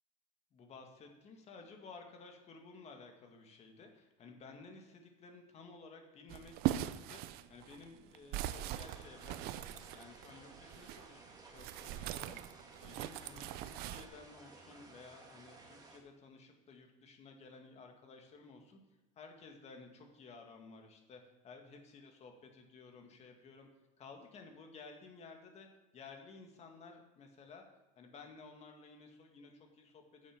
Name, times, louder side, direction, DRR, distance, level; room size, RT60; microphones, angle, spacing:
voice 1, 0.5-18.8 19.2-23.7 24.0-25.7 25.9-27.7 28.0-30.4, left 4 dB, 40° left, 4 dB, 2.0 m, -55 dB
sound 1, 6.3-11.1 11.5-14.1, right 13 dB, 70° right, 0.6 m, -40 dB
sound 2, 8.4-16.0, right 3 dB, 20° right, 1.9 m, -57 dB
9.7 x 7.2 x 6.0 m, 1.1 s
cardioid pair, 125°, 17 cm